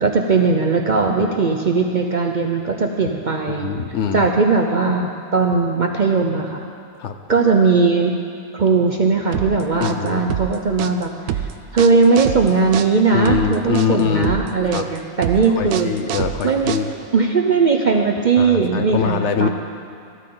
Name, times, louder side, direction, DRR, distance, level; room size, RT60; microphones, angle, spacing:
voice 1, 0.0-3.7 4.1-6.7 7.3-8.2 8.5-11.1 11.4-15.9 16.4-16.7 17.1-19.5, right 4 dB, 45° right, 2 dB, 0.6 m, -18 dB
voice 2, 3.5-4.3 7.0-7.2 9.8-10.2 13.1-14.4 14.7-14.9 15.5-16.9 18.4-19.5, left 7 dB, 65° left, 7 dB, 0.8 m, -23 dB
sound 1, 9.3-17.2, right 10 dB, 90° right, 1.1 m, -27 dB
15.0 x 12.5 x 3.9 m, 2.4 s
omnidirectional pair, 1.4 m